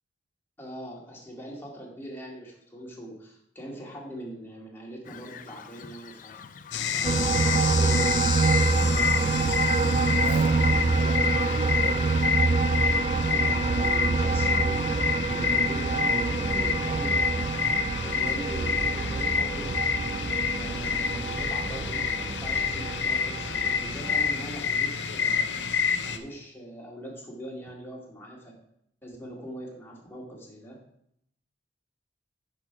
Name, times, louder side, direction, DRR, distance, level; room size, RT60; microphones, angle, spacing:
voice 1, 0.6-6.3 6.9-9.6 10.5-11.0 13.2-17.5 18.0-19.8 20.6-25.5 26.0-28.5 29.0-30.8, right 1 dB, 15° left, -3 dB, 2.2 m, -42 dB
Bird vocalization bird call bird song, 5.0-12.3, left 6 dB, 45° left, 0.5 m, -44 dB
sound 1, 6.7-26.2, left 6 dB, 80° left, 0.7 m, -28 dB
sound 2, 7.0-24.5, right 4 dB, 35° right, 0.4 m, -26 dB
voice 2, 10.2-12.0, right 4 dB, 90° right, 10 dB, 0.5 m, -38 dB
9.8 x 5.4 x 4.7 m, 0.74 s
head